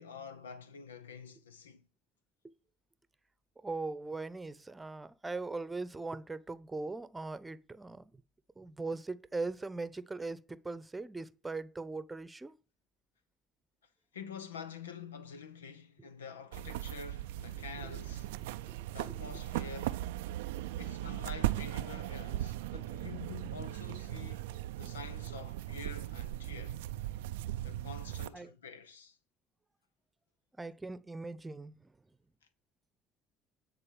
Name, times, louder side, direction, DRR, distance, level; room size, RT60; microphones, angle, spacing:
voice 1, 0.0-1.8 14.1-18.3 18.9-20.0 20.8-26.8 27.6-29.2, left 6 dB, 90° left, 0.7 m, -47 dB
voice 2, 3.6-8.1 8.6-12.5 18.7-19.2 28.3-28.5 30.6-31.9, right 3 dB, 20° right, 0.9 m, -40 dB
sound 1, 16.5-28.3, right 15 dB, 80° right, 0.3 m, -38 dB
9.9 x 4.2 x 7.3 m
hypercardioid pair, 60°, 0 cm